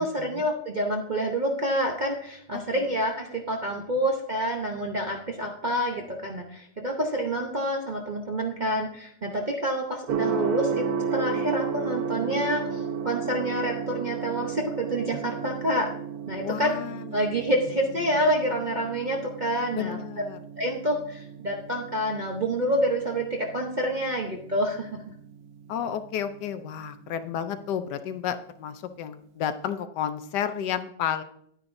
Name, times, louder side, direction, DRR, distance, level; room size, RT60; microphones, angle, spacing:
voice 1, 0.0-15.9 16.3-16.7 17.1-20.0 20.6-24.9, right 1 dB, 40° right, -1 dB, 0.6 m, -28 dB
voice 2, 2.5-2.9 16.4-17.2 19.7-20.4 25.7-31.2, left 9 dB, 75° left, 10 dB, 1.1 m, -32 dB
Gong, 10.1-27.9, right 6 dB, 80° right, 1.6 m, -34 dB
10.5 x 9.7 x 2.6 m, 0.69 s
omnidirectional pair, 2.0 m